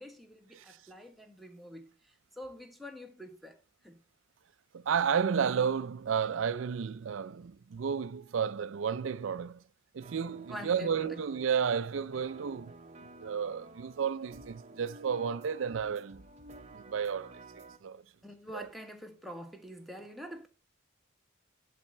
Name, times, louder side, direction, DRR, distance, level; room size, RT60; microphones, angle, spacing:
voice 1, 0.0-3.6 3.8-4.0 10.5-11.2 18.2-20.5, equal, ahead, 1.3 m, -46 dB
voice 2, 4.7-9.6 9.9-12.8 13.2-16.2 16.7-18.0 18.5-18.7, right 7 dB, 75° right, 0.4 m, -32 dB
sound 1, 10.0-17.8, right 2 dB, 35° right, 0.8 m, -52 dB
11.5 x 4.2 x 6.5 m
head